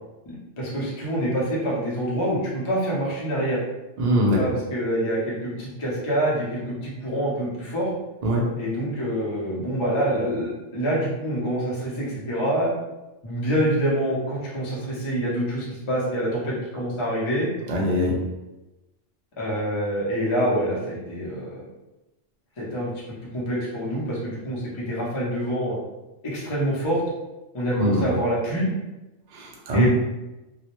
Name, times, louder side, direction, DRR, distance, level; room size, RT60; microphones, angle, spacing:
voice 1, 0.3-3.6 4.3-7.9 8.6-12.7 13.2-17.5 19.4-21.6 22.6-22.9 23.3-25.8 26.2-27.0 27.5-28.7 29.7-29.9, equal, 35° left, -6 dB, 0.5 m, -26 dB
voice 2, 4.0-4.4 8.2-8.5 17.7-18.2 27.8-28.1 29.3-29.9, equal, 70° right, -1 dB, 0.4 m, -22 dB
2.3 x 2.0 x 2.9 m, 1.0 s
omnidirectional pair, 1.3 m